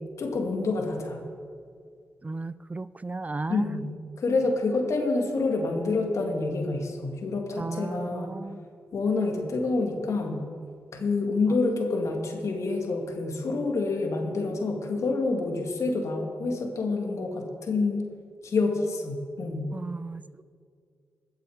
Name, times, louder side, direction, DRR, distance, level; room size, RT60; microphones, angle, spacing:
voice 1, 0.2-1.2 3.5-3.9 4.2-8.4 8.9-10.4 10.9-18.0 18.4-19.7, left 3 dB, 70° left, 2 dB, 2.3 m, -27 dB
voice 2, 2.2-3.6 7.6-8.6 19.7-20.4, right 3 dB, 30° right, 17 dB, 0.4 m, -35 dB
21.0 x 7.5 x 5.1 m, 2.2 s
supercardioid pair, 45°, 5 cm